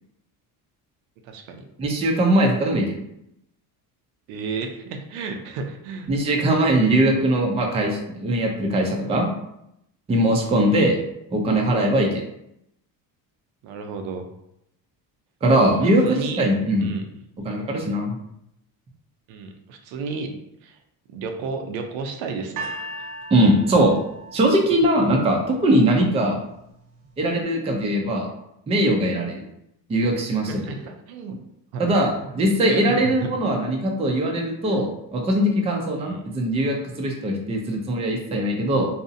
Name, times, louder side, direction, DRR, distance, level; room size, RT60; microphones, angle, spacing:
voice 1, 1.2-1.6 4.3-6.1 10.4-10.6 13.6-14.3 15.7-16.4 16.8-17.1 19.3-20.8 21.1-22.7 30.5-31.4 31.7-32.4 32.6-33.5 36.0-36.2, right 4 dB, 85° right, 5 dB, 0.5 m, -33 dB
voice 2, 1.8-3.0 6.1-9.3 10.1-11.0 11.3-12.2 15.4-16.9 17.4-18.1 23.3-23.9 24.3-26.4 27.2-28.3 28.7-29.4 29.9-30.7 31.8-38.9, right 1 dB, 15° right, 1 dB, 0.3 m, -21 dB
sound 1, 22.6-25.7 26.5-26.6, right 2 dB, 45° right, 0.7 m, -37 dB
2.6 x 2.0 x 2.6 m, 0.80 s
cardioid pair, 100°, 45 cm